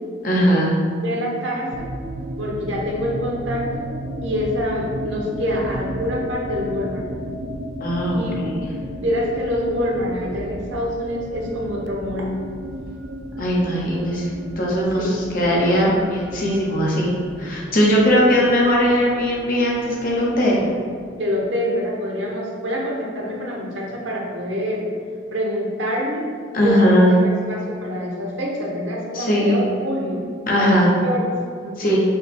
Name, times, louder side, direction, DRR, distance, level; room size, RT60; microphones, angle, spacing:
voice 1, 0.2-0.8 7.8-8.6 13.4-17.1 17.4-20.6 26.5-27.1 29.1-29.7 30.5-30.9 31.8-32.0, equal, 45° left, -4 dB, 0.9 m, -19 dB
voice 2, 1.0-1.9 2.4-3.8 4.2-7.1 8.1-8.4 8.9-12.3 15.0-15.2 17.9-18.4 21.2-24.8 25.3-26.2 26.6-30.2 30.6-32.0, equal, 80° right, -2 dB, 1.0 m, -26 dB
sound 1, 1.7-21.6, right 1 dB, 60° right, 0.3 m, -34 dB
5.5 x 2.2 x 4.3 m, 2.1 s
head